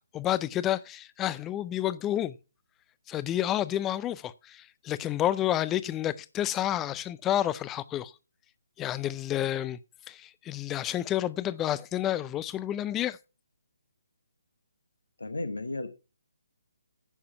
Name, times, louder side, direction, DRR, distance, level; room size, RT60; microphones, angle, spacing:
voice 1, 0.0-2.4 3.1-8.1 8.8-9.8 10.1-13.2, left 12 dB, 15° left, 0.5 m, -30 dB
voice 2, 15.2-15.9, left 2 dB, 70° left, 1.3 m, -34 dB
10.0 x 6.7 x 5.8 m
figure-of-eight pair, 140°, 0 cm